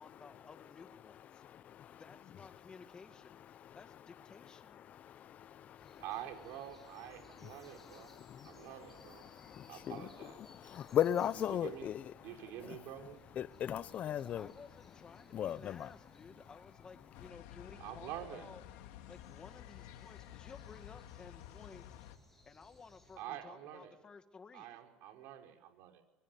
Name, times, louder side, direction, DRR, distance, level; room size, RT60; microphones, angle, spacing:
voice 1, 0.0-1.4 1.9-3.4 3.7-4.9 14.1-18.6 19.1-21.9 22.4-24.8, left 5 dB, 20° left, 2.1 m, -56 dB
voice 2, 1.3-2.0 3.5-4.0 4.6-6.0 7.0-12.8 13.3-14.5 15.3-16.0, left 10 dB, 35° left, 1.0 m, -39 dB
sound 1, 5.8-23.2, left 2 dB, 5° left, 7.6 m, -65 dB
voice 3, 6.0-8.1 8.4-9.3 9.7-10.4 11.5-11.9 12.2-13.2 17.8-18.4 23.2-23.9 24.5-26.0, right 11 dB, 65° right, 5.3 m, -47 dB
sound 2, 17.1-22.2, left 12 dB, 85° left, 2.8 m, -52 dB
26.0 x 24.5 x 9.4 m
cardioid pair, 150°, 4 cm